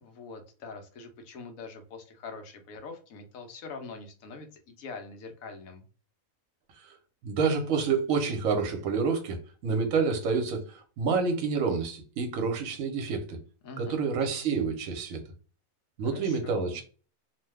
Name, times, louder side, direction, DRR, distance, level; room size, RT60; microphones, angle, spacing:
voice 1, 0.0-5.8 13.6-14.0 16.1-16.8, left 4 dB, 75° left, 1.1 m, -44 dB
voice 2, 7.2-13.4 13.8-15.2 16.0-16.8, right 5 dB, 75° right, 1.1 m, -28 dB
2.9 x 2.1 x 3.3 m
omnidirectional pair, 1.5 m